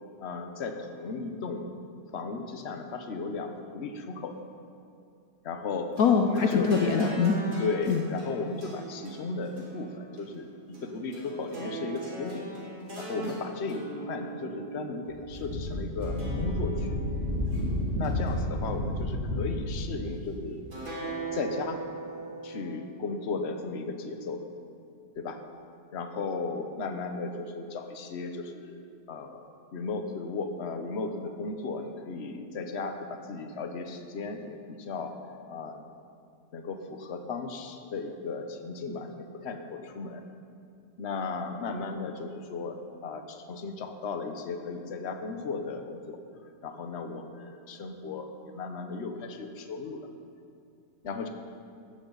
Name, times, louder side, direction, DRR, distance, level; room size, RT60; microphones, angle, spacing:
voice 1, 0.2-1.7 2.1-4.4 5.4-6.0 6.3-6.7 7.6-12.5 13.0-17.0 18.0-20.7 21.3-21.8 22.4-24.5 25.2-25.4 25.9-28.8 29.1-29.4 29.7-35.1 35.5-35.8 36.5-40.2 41.0-46.2 46.6-50.1 51.0-51.3, left 4 dB, 45° left, 5 dB, 1.1 m, -35 dB
voice 2, 6.0-7.5 7.9-8.0, left 5 dB, 65° left, 4 dB, 1.1 m, -23 dB
sound 1, 6.0-15.4 16.0-17.6 18.0-19.2 20.7-22.6, right 3 dB, 70° right, 4.3 m, -40 dB
Wind, 15.1-19.9, left 1 dB, 45° right, 3.2 m, -31 dB
16.0 x 13.0 x 4.0 m, 2.4 s
omnidirectional pair, 1.7 m